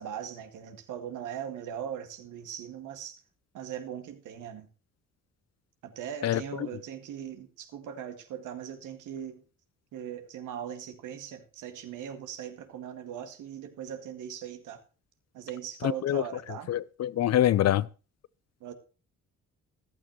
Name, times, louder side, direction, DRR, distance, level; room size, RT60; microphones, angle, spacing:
voice 1, 0.0-3.2 3.5-4.7 5.8-9.4 9.9-14.8 15.3-16.7 18.6-18.7, right 9 dB, 90° right, 2.0 m, -39 dB
voice 2, 15.8-16.2 16.7-17.9, left 12 dB, 60° left, 0.6 m, -25 dB
14.5 x 12.0 x 3.0 m
cardioid pair, 90°, 30 cm